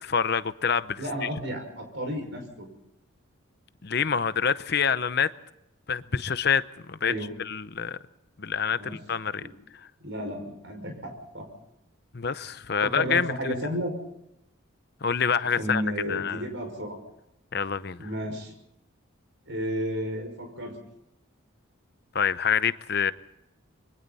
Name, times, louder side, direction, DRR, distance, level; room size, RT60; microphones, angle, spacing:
voice 1, 0.0-1.3 3.8-5.3 5.9-6.6 6.9-7.1 7.4-8.0 8.4-9.4 12.1-13.6 15.0-15.8 16.1-16.5 17.5-18.1 22.1-23.1, left 6 dB, 50° left, 0.7 m, -26 dB
voice 2, 1.0-2.7 7.0-7.3 8.8-9.0 9.4-9.5 10.0-11.4 12.8-13.9 15.6-17.0 18.0-18.5 19.5-20.7, equal, 60° right, 5.9 m, -32 dB
26.5 x 23.5 x 4.2 m
head